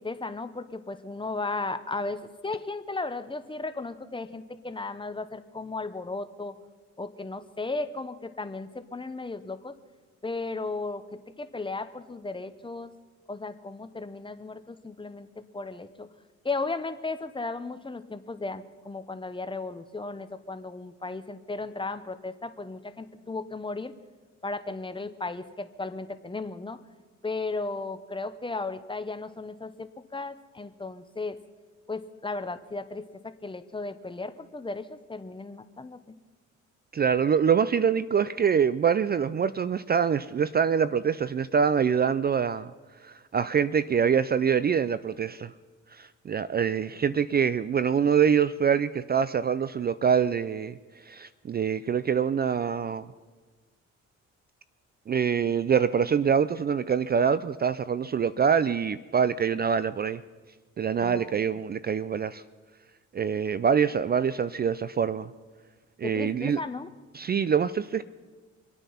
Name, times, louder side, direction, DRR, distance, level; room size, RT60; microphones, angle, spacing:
voice 1, 0.0-6.5 7.0-9.7 10.2-12.9 13.3-16.1 16.4-23.9 24.4-26.8 27.2-31.4 31.9-36.2 61.0-61.4 66.0-66.9, left 3 dB, 15° left, 11 dB, 0.9 m, -35 dB
voice 2, 36.9-42.7 43.0-45.5 45.9-50.8 51.1-53.1 55.1-60.2 60.8-62.4 63.1-65.3 66.0-66.6 67.1-68.0, right 7 dB, 30° right, 15 dB, 0.4 m, -25 dB
25.5 x 9.1 x 5.7 m, 1.3 s
cardioid pair, 90°, 30 cm